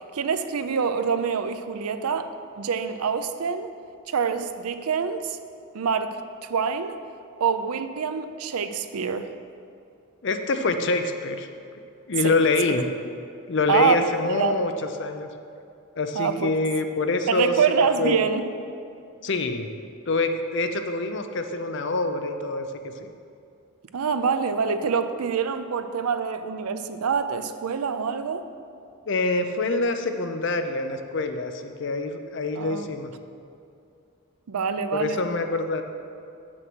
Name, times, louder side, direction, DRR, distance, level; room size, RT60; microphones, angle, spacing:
voice 1, 0.0-3.7 4.1-5.4 5.7-6.2 6.5-7.0 7.4-9.3 12.2-12.3 13.7-14.1 14.4-14.6 16.1-16.5 17.3-18.5 23.9-28.5 32.6-32.9 34.5-35.2, right 6 dB, 85° right, 10 dB, 0.5 m, -25 dB
voice 2, 10.2-11.5 12.1-12.8 13.5-14.7 15.0-15.3 16.0-17.5 18.0-18.2 19.2-19.7 20.1-22.7 23.0-23.1 29.1-33.1 34.9-35.8, left 3 dB, 55° left, 7 dB, 0.5 m, -25 dB
7.6 x 6.1 x 6.1 m, 2.5 s
head